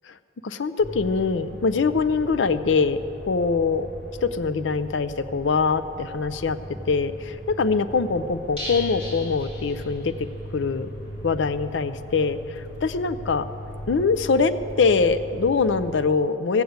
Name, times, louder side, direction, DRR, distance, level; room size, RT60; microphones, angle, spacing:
voice 1, 0.4-3.0 3.3-3.9 4.2-6.6 6.9-10.3 10.5-10.9 11.2-13.4 13.9-16.6, left 4 dB, 75° left, 12 dB, 0.5 m, -23 dB
sound 1, 0.8-15.9, equal, 60° left, 2.3 m, -38 dB
sound 2, 8.6-10.3 10.6-10.7 11.0-11.1, left 2 dB, 30° left, 4.1 m, -37 dB
17.0 x 8.1 x 7.9 m, 2.8 s
head